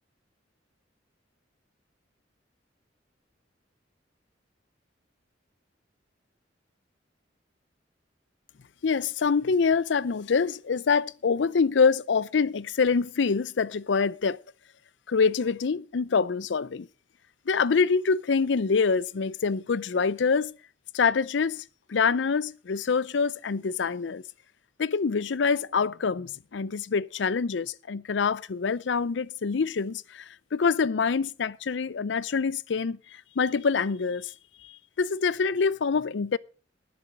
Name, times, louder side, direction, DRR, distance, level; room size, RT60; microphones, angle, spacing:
voice 1, 8.8-14.4 15.1-16.9 17.5-20.5 20.9-21.6 21.9-24.2 24.8-33.0 33.4-34.3 34.6-36.4, left 5 dB, 75° left, 0.5 m, -25 dB
19.5 x 7.0 x 5.0 m
head